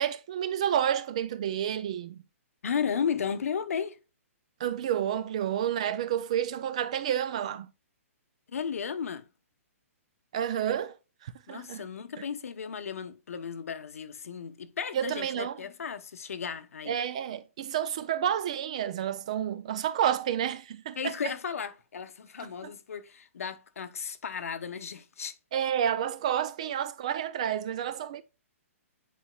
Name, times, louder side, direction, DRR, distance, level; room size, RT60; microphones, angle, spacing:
voice 1, 0.0-2.2 4.6-7.7 10.3-11.0 11.2-11.8 14.9-15.6 16.9-21.1 22.6-22.7 25.5-28.2, right 10 dB, 25° right, 0.3 m, -30 dB
voice 2, 2.6-4.0 8.5-9.3 11.5-17.0 21.0-25.3, left 7 dB, 75° left, 1.0 m, -34 dB
9.7 x 4.2 x 2.3 m
hypercardioid pair, 175°, 8 cm